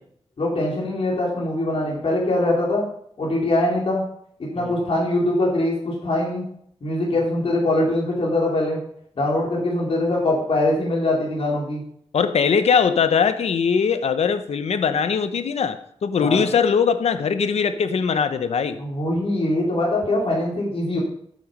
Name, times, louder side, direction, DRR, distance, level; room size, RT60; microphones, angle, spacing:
voice 1, 0.4-2.8 3.2-4.0 4.5-6.5 6.8-8.8 9.2-11.8 16.2-16.4 18.8-21.0, left 1 dB, 60° left, 3.9 m, -22 dB
voice 2, 12.1-18.8, left 6 dB, 90° left, 0.9 m, -21 dB
12.0 x 8.7 x 5.3 m
wide cardioid pair, 100°, 11 cm